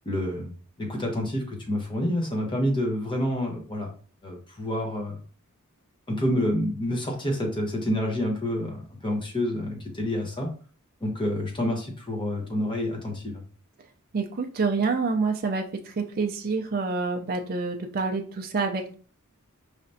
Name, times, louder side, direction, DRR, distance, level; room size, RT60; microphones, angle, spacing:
voice 1, 0.0-0.5 0.8-3.9 4.2-5.2 6.1-10.5 11.0-13.4, left 1 dB, 20° left, 1 dB, 1.0 m, -28 dB
voice 2, 14.1-18.9, right 4 dB, 45° right, 4 dB, 0.5 m, -27 dB
4.9 x 3.3 x 2.7 m, 0.41 s
head